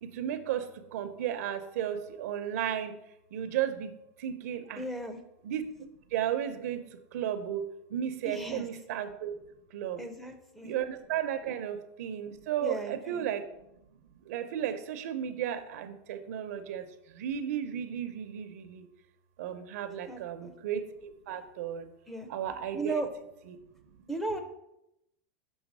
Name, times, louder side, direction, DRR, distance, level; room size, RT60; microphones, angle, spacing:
voice 1, 0.0-2.9 3.3-4.8 5.4-9.4 9.7-10.0 10.6-13.4 14.2-18.9 19.4-21.9 22.3-23.0 23.5-23.6, right 10 dB, 80° right, 9 dB, 0.7 m, -34 dB
voice 2, 4.8-5.2 8.2-8.6 10.0-10.7 11.4-11.5 12.6-13.3 20.1-20.5 22.1-22.3 22.7-23.1 24.1-24.4, right 2 dB, 5° left, 6 dB, 0.5 m, -36 dB
6.3 x 3.5 x 6.1 m, 0.82 s
supercardioid pair, 160°, 8 cm